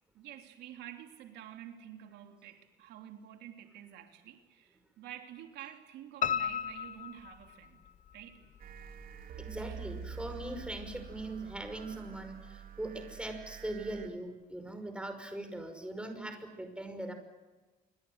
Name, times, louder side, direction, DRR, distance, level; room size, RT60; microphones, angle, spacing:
voice 1, 0.1-7.8 8.1-8.4 9.6-9.8, right 11 dB, 80° right, 3.1 m, -49 dB
Piano, 6.2-8.1 8.6-9.4 9.7-9.8 10.3-10.4 10.6-10.7, left 8 dB, 45° left, 0.9 m, -35 dB
sound 1, 8.6-14.1, right 6 dB, 55° right, 3.2 m, -47 dB
voice 2, 9.3-17.1, right 1 dB, 5° right, 5.6 m, -41 dB
27.5 x 24.5 x 8.1 m
cardioid pair, 110°, 17 cm